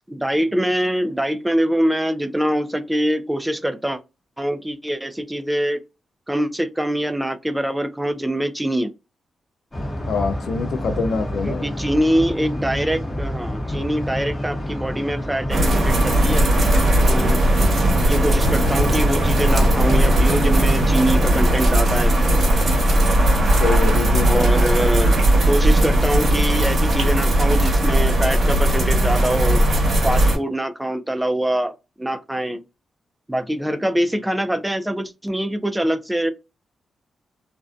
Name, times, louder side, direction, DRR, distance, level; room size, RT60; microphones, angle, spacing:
voice 1, 0.1-4.0 4.4-5.8 6.3-8.9 11.4-16.4 17.1-17.4 18.0-22.1 24.2-25.2 25.5-29.6 30.0-32.6 33.3-36.3, right 1 dB, 10° right, 0.4 m, -24 dB
sound 1, 9.7-20.9, equal, 20° left, 0.8 m, -29 dB
voice 2, 10.1-11.6 23.6-24.5, left 4 dB, 75° left, 0.4 m, -24 dB
Snow and dripping, 15.5-30.4, right 1 dB, 50° right, 1.1 m, -17 dB
2.5 x 2.1 x 2.4 m
cardioid pair, 105°, 0 cm